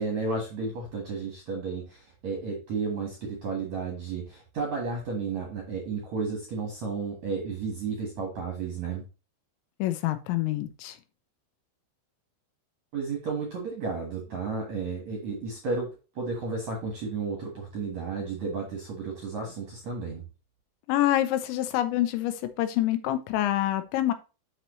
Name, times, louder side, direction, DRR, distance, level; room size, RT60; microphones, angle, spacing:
voice 1, 0.0-9.0 12.9-20.2, right 4 dB, 65° right, 0 dB, 1.8 m, -33 dB
voice 2, 9.8-11.0 20.9-24.1, left 13 dB, 80° left, 11 dB, 2.9 m, -26 dB
7.9 x 6.1 x 3.1 m, 0.32 s
omnidirectional pair, 5.4 m